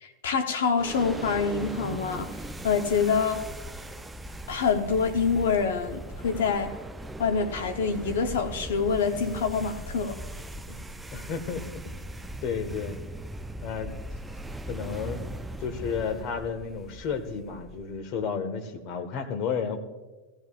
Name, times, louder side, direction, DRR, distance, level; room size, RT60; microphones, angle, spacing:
voice 1, 0.0-2.4 2.6-3.4 4.5-6.8 7.2-10.2, left 5 dB, 80° left, 0.9 m, -26 dB
sound 1, 0.8-18.1, right 1 dB, 10° right, 0.5 m, -39 dB
voice 2, 11.1-11.9 12.4-13.0 13.6-13.9 14.7-15.2 15.6-19.8, left 6 dB, 50° left, 1.5 m, -32 dB
16.5 x 15.5 x 2.5 m
hypercardioid pair, 105°, 0 cm